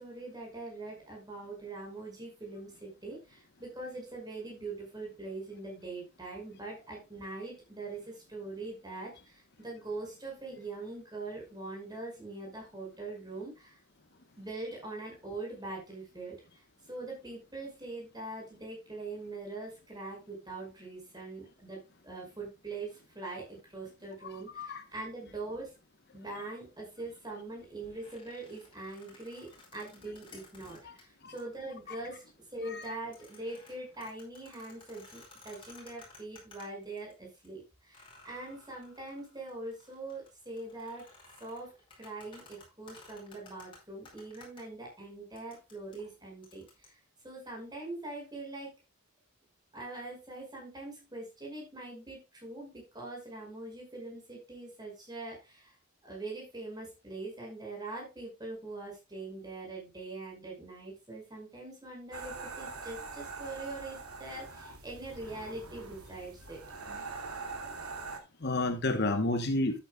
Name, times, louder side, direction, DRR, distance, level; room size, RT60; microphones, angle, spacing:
voice 1, 0.0-13.8 14.4-16.4 16.9-25.7 26.1-32.2 32.5-41.1 41.4-41.7 42.0-46.9 47.2-48.7 49.7-55.7 56.0-67.1, right 2 dB, 20° right, 5.5 m, -43 dB
voice 2, 24.2-24.8 26.3-26.4 30.8-31.0 31.2-31.4 31.9-32.0 32.6-33.0 68.4-69.8, left 2 dB, 45° left, 1.0 m, -31 dB
sound 1, 27.8-31.0 31.4-31.5 32.0-32.3 32.6-37.1 37.4-37.5 37.9-44.6 45.4-46.9, left 3 dB, 25° left, 4.7 m, -56 dB
sound 2, 62.1-68.2, right 4 dB, 85° right, 2.6 m, -43 dB
12.5 x 8.8 x 2.3 m
head